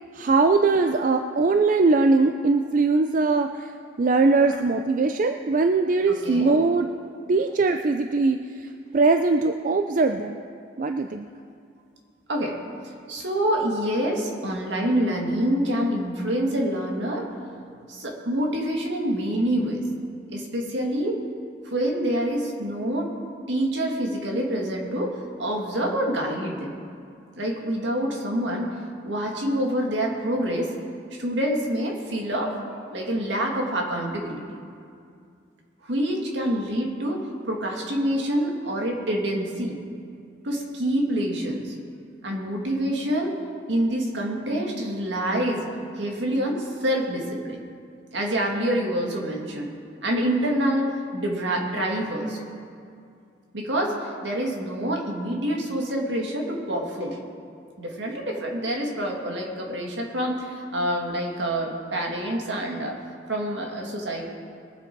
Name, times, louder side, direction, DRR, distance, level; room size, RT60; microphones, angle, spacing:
voice 1, 0.1-3.7 4.0-6.9 7.3-10.4 10.8-11.3, right 3 dB, 45° right, 6 dB, 0.4 m, -21 dB
voice 2, 6.1-6.6 12.3-12.6 13.1-17.3 17.9-19.8 20.3-21.2 21.7-23.1 23.5-26.8 27.4-28.7 29.0-30.7 31.2-32.5 32.9-34.6 35.8-39.8 40.4-41.7 42.2-43.4 43.7-45.6 46.0-47.6 48.1-49.7 50.0-52.5 53.5-57.2 57.8-63.0 63.3-64.2, right 1 dB, 70° right, 0 dB, 2.0 m, -26 dB
21.5 x 7.9 x 4.6 m, 2.4 s
head